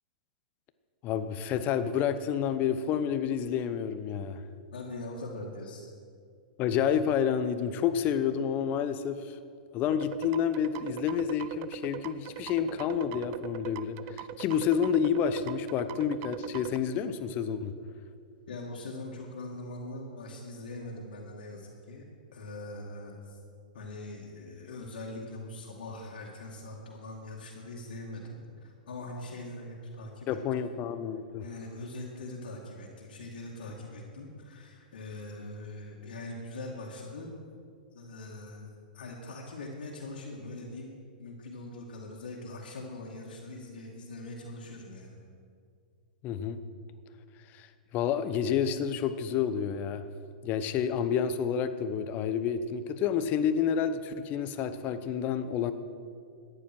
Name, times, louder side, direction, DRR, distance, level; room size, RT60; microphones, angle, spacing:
voice 1, 1.0-4.4 6.6-9.4 9.7-17.7 30.3-31.4 46.2-46.6 47.5-47.7 47.9-50.0 50.4-55.7, left 8 dB, 35° left, 11 dB, 0.9 m, -29 dB
voice 2, 4.7-5.9 18.5-22.0 22.3-23.4 23.7-30.6 31.4-37.3 37.9-45.2, left 2 dB, 75° left, -2 dB, 2.3 m, -42 dB
sound 1, 9.9-16.8, right 13 dB, 45° right, 0.5 m, -41 dB
14.0 x 10.0 x 6.2 m, 2.2 s
hypercardioid pair, 115°, 5 cm